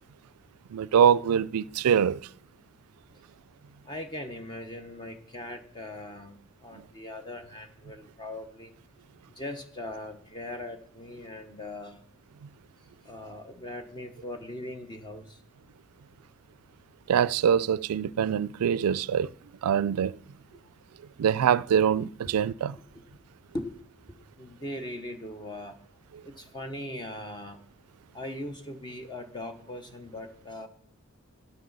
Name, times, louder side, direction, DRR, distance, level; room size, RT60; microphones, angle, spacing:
voice 1, 0.7-2.2 17.1-19.3 19.6-20.2 21.2-22.8, right 8 dB, 90° right, 0.3 m, -24 dB
voice 2, 3.8-8.7 9.3-12.0 13.0-15.4 22.2-22.3 22.9-23.0 23.5-23.7 24.4-25.8 26.2-27.6 28.1-30.7, left 1 dB, 20° left, 0.8 m, -40 dB
13.0 x 9.4 x 3.9 m
head